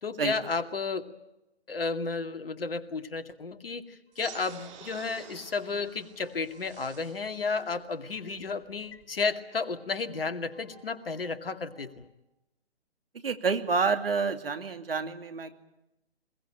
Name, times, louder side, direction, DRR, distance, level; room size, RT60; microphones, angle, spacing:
voice 1, 0.0-1.1 1.7-12.1, left 4 dB, 60° left, 7 dB, 2.4 m, -33 dB
sound 1, 4.1-8.9 9.2-11.9, left 1 dB, 15° left, 5.8 m, -60 dB
sound 2, 4.1-9.1, right 8 dB, 30° right, 3.4 m, -51 dB
voice 2, 13.2-15.6, right 5 dB, 60° right, 8 dB, 2.8 m, -28 dB
23.5 x 22.0 x 8.8 m, 0.91 s
figure-of-eight pair, 140°, 32 cm